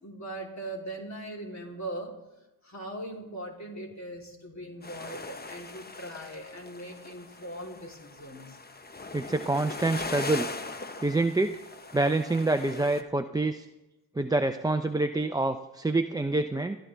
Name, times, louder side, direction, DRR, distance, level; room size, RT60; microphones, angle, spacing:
voice 1, 0.0-2.2 2.6-8.6, right 1 dB, 40° left, 0 dB, 3.4 m, -40 dB
sound 1, 4.8-13.0, left 3 dB, 20° left, 1.0 m, -40 dB
voice 2, 9.1-10.5 11.0-11.5 11.9-13.7 14.1-16.8, right 2 dB, 10° right, 6 dB, 0.5 m, -26 dB
21.0 x 12.5 x 3.4 m, 0.99 s
cardioid pair, 70°, 43 cm